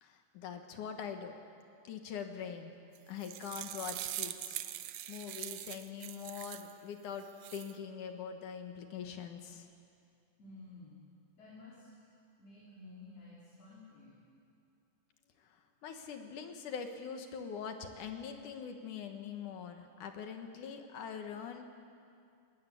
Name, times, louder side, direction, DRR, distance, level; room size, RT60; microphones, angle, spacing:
voice 1, 0.0-1.4 1.8-2.7 3.1-7.2 7.5-9.7 15.4-21.6, left 7 dB, 75° left, 5 dB, 2.9 m, -43 dB
sound 1, 2.9-6.7 7.2-7.7, right 13 dB, 75° right, 1.6 m, -42 dB
voice 2, 10.4-11.0 11.4-14.2, left 2 dB, 50° left, -7 dB, 4.9 m, -53 dB
21.0 x 19.5 x 8.6 m, 2.4 s
omnidirectional pair, 3.7 m